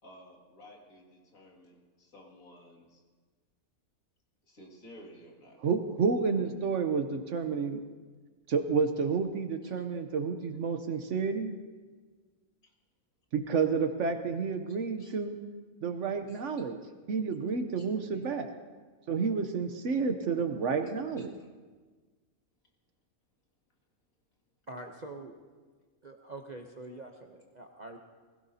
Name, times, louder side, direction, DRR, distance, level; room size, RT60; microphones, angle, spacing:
voice 1, 0.0-3.0 4.5-5.6 9.6-9.7 12.6-12.7 15.0-15.1 16.3-16.4 17.8-17.9 18.1-18.2 21.3-21.5, equal, 70° left, -2 dB, 2.7 m, -54 dB
voice 2, 5.6-7.8 8.5-11.5 13.3-15.4 15.8-16.8 17.1-18.5 19.1-21.3, right 5 dB, 60° right, 7 dB, 1.0 m, -30 dB
voice 3, 24.7-25.3 26.0-28.0, right 2 dB, 40° right, 3 dB, 0.7 m, -44 dB
20.5 x 16.5 x 2.8 m, 1.4 s
omnidirectional pair, 1.5 m